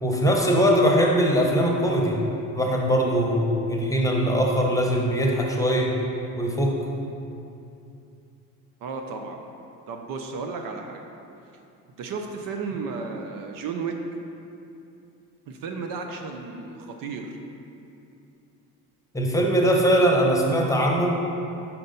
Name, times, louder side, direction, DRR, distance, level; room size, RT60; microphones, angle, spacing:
voice 1, 0.0-2.2 2.5-5.9 6.4-6.7 19.1-21.2, equal, 10° left, -1 dB, 1.0 m, -21 dB
voice 2, 8.8-9.5 9.9-11.0 12.0-14.0 15.5-17.4, right 4 dB, 65° right, 4 dB, 0.7 m, -33 dB
5.3 x 4.4 x 5.3 m, 2.7 s
supercardioid pair, 80°, 36 cm